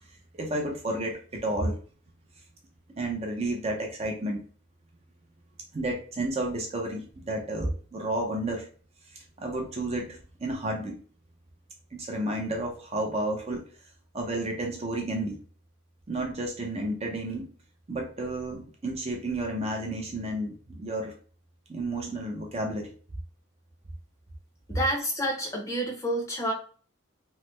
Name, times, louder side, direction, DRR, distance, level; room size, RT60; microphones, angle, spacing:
voice 1, 0.3-1.8 3.0-4.4 5.7-8.7 9.4-11.0 11.9-13.6 14.1-15.4 16.1-17.5 17.9-21.1 21.7-22.9, right 1 dB, 30° right, 1 dB, 0.5 m, -31 dB
voice 2, 24.7-26.5, equal, 15° left, 0 dB, 0.6 m, -29 dB
3.1 x 2.0 x 3.0 m, 0.40 s
head